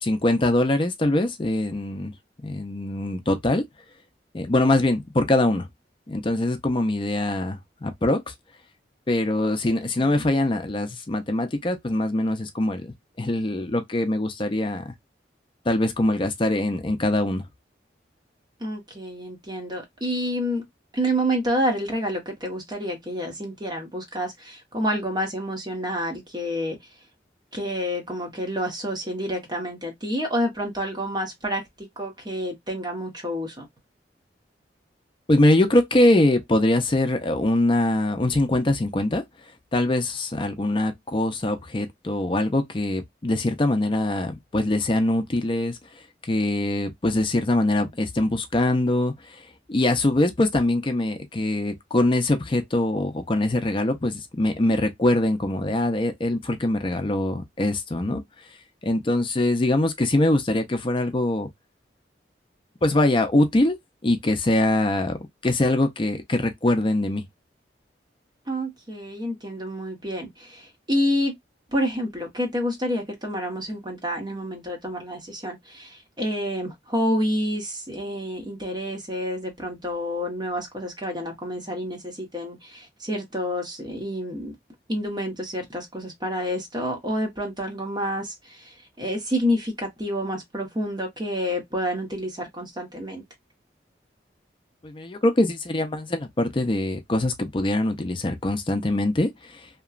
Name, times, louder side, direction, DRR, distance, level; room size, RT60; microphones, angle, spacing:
voice 1, 0.0-2.1 2.4-3.6 4.3-5.7 6.1-8.3 9.1-14.9 15.7-17.4 35.3-39.2 39.7-45.8 46.3-49.4 49.7-58.2 58.8-61.5 62.8-63.7 64.0-65.2 65.4-67.2 94.8-99.7, left 1 dB, 30° left, 0.5 m, -23 dB
voice 2, 9.8-10.3 18.6-20.6 20.9-26.8 27.5-33.7 68.5-71.3 71.7-84.5 84.9-93.2, equal, 25° right, 1.0 m, -28 dB
2.9 x 2.3 x 2.3 m
head